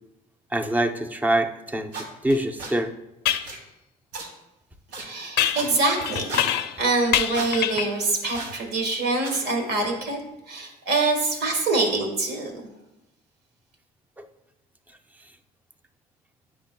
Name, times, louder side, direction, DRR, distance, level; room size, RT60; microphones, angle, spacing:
voice 1, 0.5-2.9 14.2-14.3, right 1 dB, 10° right, 8 dB, 0.5 m, -25 dB
sound 1, 1.9-2.1 2.6-2.7 3.4-3.6 4.1-4.3 4.9-5.0 5.6-5.7 6.3-6.5 7.3-7.5 8.3-8.6 9.2-9.4, right 3 dB, 90° right, 1.4 m, -34 dB
sound 2, 2.3-2.4 3.2-3.5 5.4-6.8 7.1-8.0, left 11 dB, 75° left, 0.5 m, -25 dB
voice 2, 5.0-6.4 6.8-10.2 10.5-12.6, right 3 dB, 70° right, 2 dB, 1.4 m, -25 dB
9.0 x 5.1 x 2.2 m, 0.92 s
cardioid pair, 110°, 17 cm